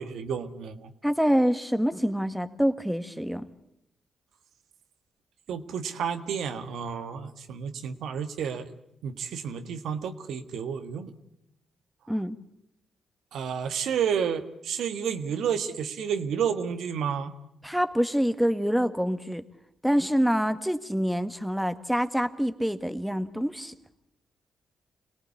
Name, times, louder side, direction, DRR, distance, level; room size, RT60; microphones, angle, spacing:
voice 1, 0.0-0.9 5.5-8.7 9.0-11.1 13.3-17.3, right 7 dB, 80° right, 9 dB, 1.5 m, -31 dB
voice 2, 1.0-3.5 12.1-12.4 17.6-19.4 19.8-23.7, equal, 5° right, 11 dB, 1.6 m, -26 dB
26.5 x 18.0 x 8.4 m, 0.82 s
supercardioid pair, 55°, 0 cm